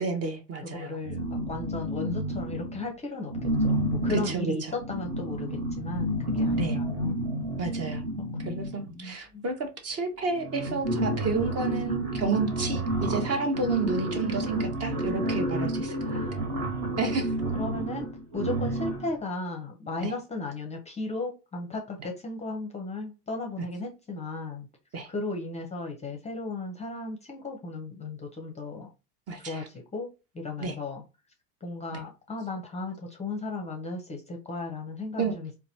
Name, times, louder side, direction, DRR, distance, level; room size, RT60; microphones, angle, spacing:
voice 1, 0.0-1.0 4.3-4.5 6.5-6.8 7.6-8.0 8.4-16.0 17.0-17.3 20.0-20.1 24.9-25.1 29.3-29.6 30.6-30.7 35.2-35.3, right 4 dB, 30° right, 0.7 m, -30 dB
voice 2, 0.6-7.2 8.4-9.4 16.0-16.8 17.5-18.1 18.3-24.7 25.1-28.9 29.4-31.0 31.6-35.6, left 3 dB, 15° left, 0.6 m, -35 dB
sound 1, 1.0-2.8 3.3-9.0 9.9-10.0 10.3-19.2, right 1 dB, 50° right, 1.5 m, -30 dB
4.0 x 2.3 x 2.7 m
hypercardioid pair, 75°, 47 cm